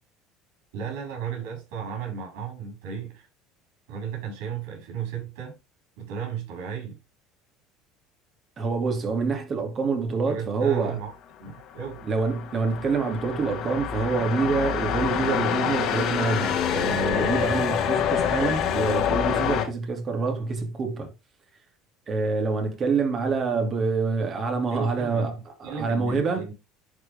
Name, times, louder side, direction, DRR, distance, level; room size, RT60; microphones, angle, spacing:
voice 1, 0.7-3.3 3.9-5.5 6.0-7.0 10.3-11.1 11.4-12.0 24.7-25.3 25.6-26.5, right 7 dB, 80° right, 5.3 m, -34 dB
voice 2, 8.6-11.0 12.0-21.1 22.1-26.4, right 4 dB, 35° right, 2.6 m, -26 dB
sound 1, 11.7-19.6, left 9 dB, 55° left, 2.1 m, -26 dB
11.0 x 5.0 x 3.5 m
supercardioid pair, 120°, 0 cm